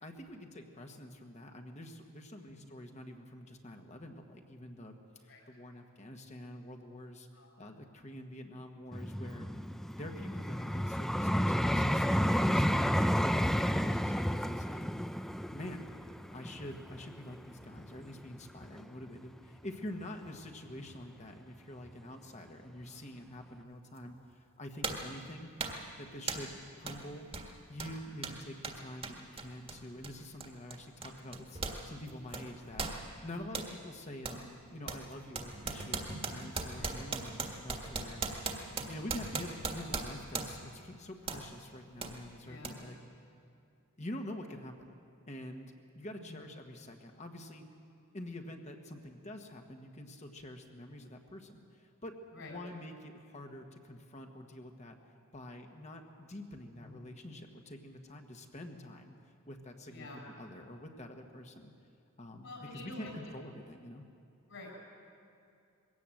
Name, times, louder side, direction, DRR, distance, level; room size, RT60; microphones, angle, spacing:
voice 1, 0.0-7.3 7.6-9.5 10.0-14.9 15.5-15.9 16.3-24.2 24.6-25.5 26.0-27.3 27.7-32.8 33.2-38.2 38.9-43.0 44.0-44.9 45.3-47.6 48.1-55.0 55.3-59.1 59.5-60.1 60.4-61.7 62.2-64.0, left 1 dB, 35° left, 4 dB, 1.4 m, -46 dB
voice 2, 7.3-7.7 28.1-28.3 33.2-33.5 36.8-37.0 42.4-42.8 46.2-46.5 52.3-52.6 56.8-57.0 59.9-60.2 62.4-63.3 64.5-64.9, left 2 dB, 65° left, 0 dB, 5.9 m, -49 dB
Vehicle, 8.9-18.0 18.6-18.8, equal, ahead, 0.4 m, -31 dB
sound 1, 24.0-24.1 24.8-25.1 25.6-25.9 26.3-26.5 26.9-27.0 27.3-31.8 32.1-33.7 34.2-34.4 34.9-40.7 41.3-41.5 42.0-42.1 42.6-42.7, right 4 dB, 25° right, 1.7 m, -39 dB
21.5 x 17.0 x 7.7 m, 2.5 s
head